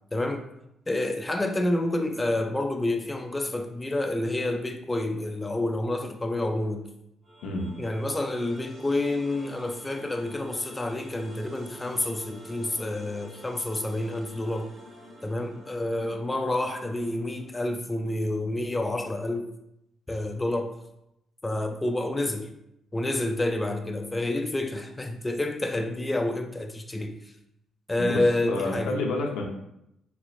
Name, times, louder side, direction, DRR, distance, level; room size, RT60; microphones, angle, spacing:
voice 1, 0.1-0.4 0.9-6.8 7.8-14.7 15.2-19.5 20.1-20.7 21.4-22.5 22.9-27.1 27.9-29.0, left 1 dB, 15° left, 4 dB, 0.3 m, -28 dB
sound 1, 7.2-18.3, equal, 70° right, 1.4 m, -49 dB
voice 2, 28.4-29.4, left 2 dB, 80° left, 1 dB, 0.6 m, -29 dB
3.2 x 3.0 x 2.5 m, 0.82 s
cardioid pair, 90°, 0 cm